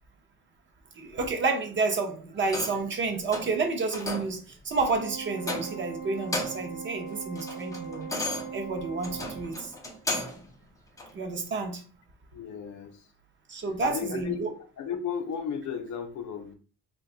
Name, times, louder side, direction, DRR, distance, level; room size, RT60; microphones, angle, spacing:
voice 1, 1.0-8.1 8.5-9.7 11.1-11.8 13.5-14.5, right 3 dB, 35° right, 4 dB, 0.5 m, -30 dB
sound 1, 2.4-2.9 3.3-3.6 3.9-4.4 4.8-5.0 5.4-5.9 6.2-6.7 7.1-10.5 11.0-11.1, left 2 dB, 10° left, 0.4 m, -35 dB
Organ, 4.8-9.9, right 5 dB, 55° right, 0.9 m, -40 dB
voice 2, 12.3-13.1 13.8-14.5 14.8-16.5, left 7 dB, 60° left, 6 dB, 0.6 m, -34 dB
2.6 x 2.2 x 3.7 m, 0.39 s
cardioid pair, 175°, 32 cm